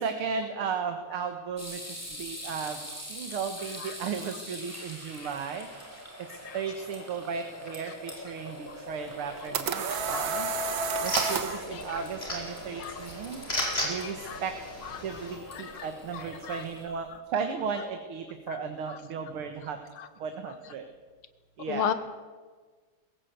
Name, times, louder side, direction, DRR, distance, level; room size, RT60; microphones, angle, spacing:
voice 1, 0.0-5.7 6.5-10.5 11.0-13.4 13.8-14.5 15.0-19.8 20.2-20.9 21.6-21.9, right 6 dB, 85° right, 7 dB, 2.3 m, -35 dB
sound 1, 1.6-16.8, equal, 5° left, 4.7 m, -44 dB
voice 2, 6.3-6.6 8.7-8.8 9.4-9.5 9.9-10.3 11.1-12.0 12.8-13.0 13.6-14.4 14.8-16.6 17.1-17.2 18.5-18.6 18.9-19.0 20.0-20.1 21.7-21.9, left 8 dB, 75° left, 12 dB, 2.1 m, -38 dB
sound 2, 9.1-11.6, right 5 dB, 65° right, 2.1 m, -30 dB
sound 3, 10.0-15.3, left 1 dB, 25° left, 4.9 m, -36 dB
21.5 x 17.0 x 8.0 m, 1.4 s
omnidirectional pair, 2.3 m